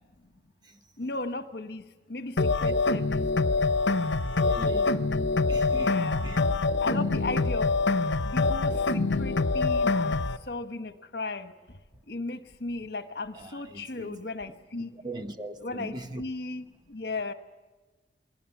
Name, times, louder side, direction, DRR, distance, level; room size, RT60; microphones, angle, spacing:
voice 1, 1.0-1.8 2.1-2.4 2.6-3.2 5.7-6.3 6.8-7.7 8.3-8.7 9.2-10.1 10.5-11.5 12.1-14.9 15.6-16.6 16.9-17.3, left 3 dB, 60° left, 9 dB, 1.3 m, -35 dB
sound 1, 2.4-10.4, left 3 dB, 85° left, 0.9 m, -25 dB
voice 2, 4.4-5.0 5.5-6.0 6.2-6.5 13.3-14.2 15.0-16.2, right 1 dB, 25° right, 7 dB, 1.0 m, -40 dB
29.0 x 20.5 x 7.2 m, 1.2 s
head